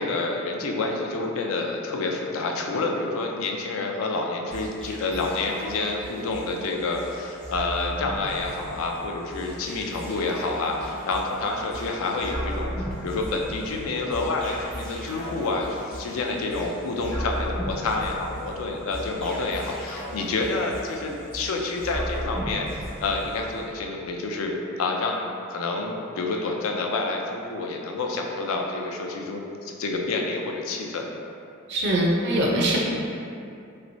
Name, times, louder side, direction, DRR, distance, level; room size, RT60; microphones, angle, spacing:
voice 1, 0.0-31.1, left 3 dB, 75° left, 1 dB, 0.4 m, -28 dB
sound 1, 4.5-23.7, equal, 5° left, 0.4 m, -37 dB
voice 2, 31.7-32.8, right 1 dB, 55° right, -2 dB, 0.5 m, -22 dB
3.1 x 3.0 x 2.6 m, 2.6 s
head